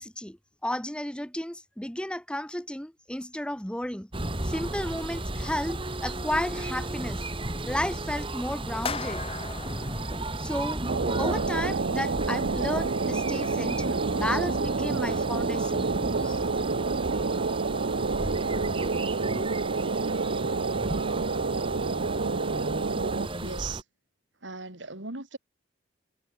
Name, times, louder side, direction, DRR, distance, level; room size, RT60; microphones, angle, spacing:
voice 1, 0.0-4.1 4.4-7.2 7.7-9.2 10.3-10.8 11.2-15.9 16.2-16.4, left 1 dB, 5° left, 1.4 m, -33 dB
sound 1, 4.1-23.8, right 2 dB, 30° right, 2.9 m, -34 dB
sound 2, 8.9-11.1, left 5 dB, 30° left, 1.7 m, -38 dB
sound 3, 10.9-23.3, right 4 dB, 65° right, 0.7 m, -28 dB
voice 2, 23.4-23.8 24.4-25.4, right 4 dB, 85° right, 4.4 m, -37 dB
head